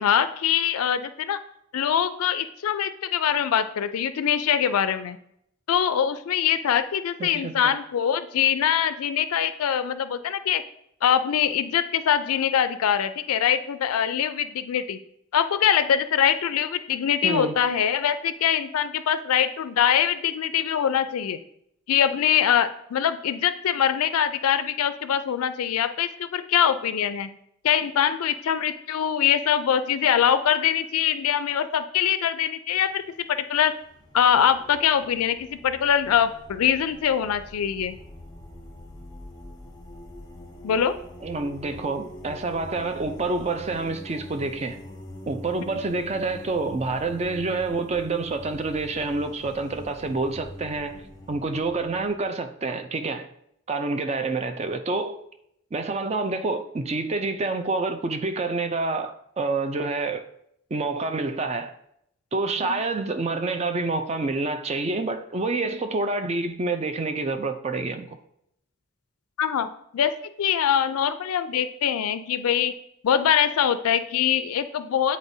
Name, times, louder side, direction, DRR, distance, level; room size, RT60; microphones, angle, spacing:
voice 1, 0.0-1.4 1.7-5.2 5.7-10.6 11.0-15.0 15.3-21.4 21.9-27.4 27.6-33.0 33.3-33.8 34.1-38.0 40.6-41.0 62.7-62.8 69.4-69.7 69.9-70.1 70.4-72.7 73.0-75.2, left 9 dB, 85° left, 0.4 m, -23 dB
voice 2, 7.2-7.7 17.2-17.6 41.2-44.8 45.3-51.0 51.3-53.3 53.7-55.2 55.7-60.2 60.7-61.7 62.3-68.1, right 3 dB, 30° right, 0.4 m, -28 dB
sound 1, 32.8-33.1 33.7-52.2, left 1 dB, 20° left, 0.6 m, -44 dB
8.5 x 4.1 x 2.7 m
head